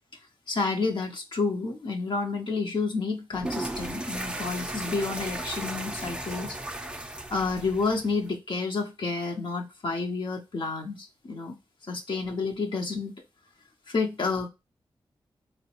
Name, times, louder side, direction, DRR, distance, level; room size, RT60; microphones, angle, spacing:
voice 1, 0.5-6.6 7.3-11.6 11.9-13.1 13.9-14.5, left 4 dB, 55° left, 0.6 m, -30 dB
sound 1, 3.3-8.4, right 1 dB, 10° right, 0.4 m, -35 dB
3.6 x 2.0 x 2.9 m
cardioid pair, 60°, 9 cm